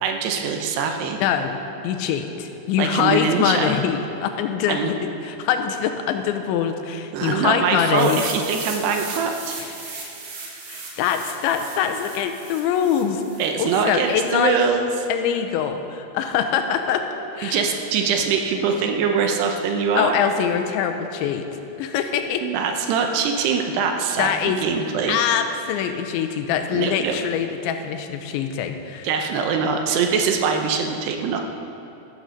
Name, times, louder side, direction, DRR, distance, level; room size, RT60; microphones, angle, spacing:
voice 1, 0.0-1.2 2.8-3.8 4.7-4.9 7.1-9.6 13.4-14.9 17.4-20.2 22.4-25.2 26.7-27.2 29.0-31.4, right 5 dB, 75° right, 4 dB, 2.8 m, -23 dB
voice 2, 1.2-8.2 9.8-10.0 10.7-13.2 13.6-14.6 15.1-17.1 17.4-17.6 20.0-21.5 21.8-22.5 24.2-24.6 25.1-29.1, left 8 dB, 85° left, 7 dB, 3.1 m, -24 dB
sound 1, 7.9-13.9, right 4 dB, 60° right, 3.5 m, -37 dB
13.5 x 13.0 x 5.2 m, 2.9 s
omnidirectional pair, 5.2 m